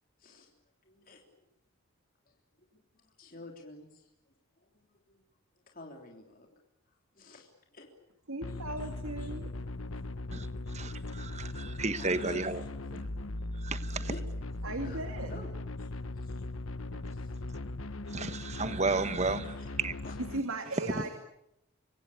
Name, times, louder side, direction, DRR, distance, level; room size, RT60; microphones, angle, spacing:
voice 1, 0.2-0.5 0.8-1.4 2.3-2.4 2.7-4.1 4.6-5.2 5.7-6.5 6.9-7.9 8.5-8.9 9.2-9.5 10.0-10.1 10.4-10.6 11.2-11.6 12.0-12.8 14.1-14.2 14.8-15.5 15.8-16.4 17.1-17.4 19.2-19.7 20.0-20.2 21.0-21.1, left 2 dB, 40° left, 1 dB, 3.4 m, -51 dB
voice 2, 8.3-9.5 14.6-15.4 20.3-21.1, right 2 dB, 80° right, 6 dB, 2.5 m, -37 dB
sound 1, 8.4-20.4, left 2 dB, 80° left, 1.2 m, -39 dB
voice 3, 10.3-12.6 12.9-13.0 13.6-14.1 18.1-19.9 20.9-21.1, right 3 dB, 30° right, 12 dB, 1.3 m, -33 dB
26.5 x 24.5 x 8.6 m, 0.81 s
head